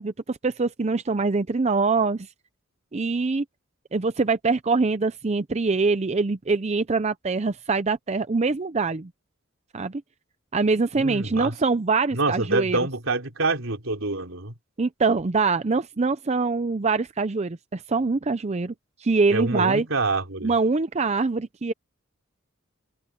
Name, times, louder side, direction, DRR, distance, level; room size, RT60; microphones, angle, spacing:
voice 1, 0.0-2.3 2.9-3.4 3.9-9.1 9.7-10.0 10.5-12.8 14.8-18.7 19.0-19.9 20.4-21.7, right 4 dB, 35° right, 0.5 m, -24 dB
voice 2, 11.0-11.5 12.1-14.5 19.3-20.5, right 3 dB, 75° right, 3.7 m, -26 dB
head